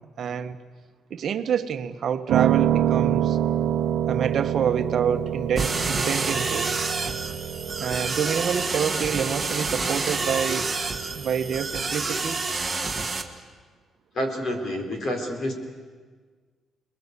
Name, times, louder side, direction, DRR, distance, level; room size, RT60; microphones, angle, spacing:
voice 1, 0.2-0.6 1.1-3.4 4.1-6.7 7.8-10.7 11.1-12.4, right 7 dB, 45° right, 9 dB, 1.2 m, -27 dB
Piano, 2.3-12.4, right 11 dB, 75° right, 0.8 m, -28 dB
sound 1, 5.6-13.2, right 3 dB, 10° right, 1.8 m, -28 dB
voice 2, 14.1-15.5, left 1 dB, 40° left, 3 dB, 4.4 m, -28 dB
28.5 x 21.0 x 8.3 m, 1.5 s
cardioid pair, 175°, 0 cm